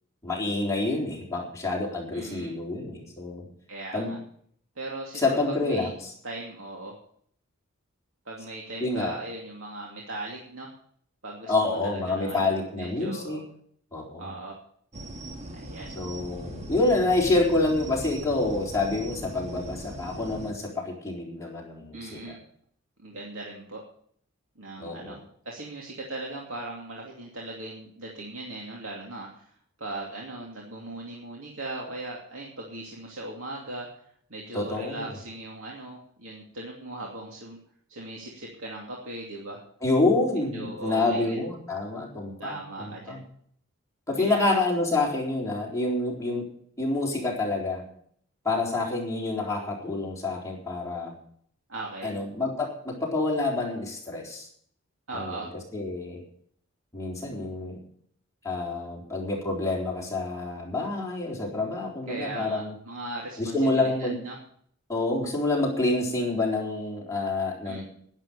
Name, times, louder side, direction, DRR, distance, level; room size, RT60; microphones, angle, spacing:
voice 1, 0.2-3.4 3.9-4.1 5.1-5.9 8.8-9.2 11.5-13.4 13.9-14.3 16.0-22.4 24.8-25.1 34.5-35.1 39.8-43.2 44.1-46.5 46.8-47.8 48.4-51.1 52.0-54.5 55.1-55.5 55.7-56.2 56.9-57.8 58.4-62.7 63.4-64.2 64.9-67.8, left 2 dB, 15° left, -3 dB, 4.0 m, -27 dB
voice 2, 2.1-2.5 3.7-4.2 4.8-5.3 5.6-5.9 6.2-7.0 8.2-10.7 11.2-13.4 14.2-14.6 15.5-15.9 21.9-22.4 23.0-23.8 24.6-29.5 29.8-33.9 34.3-37.6 37.9-39.6 40.5-41.4 42.4-43.2 44.2-44.5 51.7-52.1 55.1-55.5 62.1-64.4 67.6-67.8, right 2 dB, 70° right, -2 dB, 2.7 m, -38 dB
sound 1, 14.9-20.5, right 1 dB, 30° right, 1.6 m, -40 dB
11.5 x 11.0 x 6.9 m, 0.62 s
head